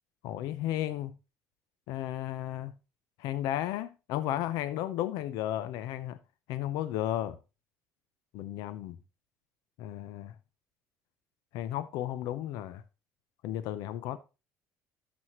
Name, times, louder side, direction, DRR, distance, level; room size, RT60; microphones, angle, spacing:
voice 1, 0.2-1.1 1.9-2.7 3.2-6.2 6.5-7.4 8.3-9.0 9.8-10.3 11.5-12.8 13.4-14.2, left 12 dB, 75° left, 0.6 m, -34 dB
12.0 x 6.2 x 3.1 m
cardioid pair, 140°, 7 cm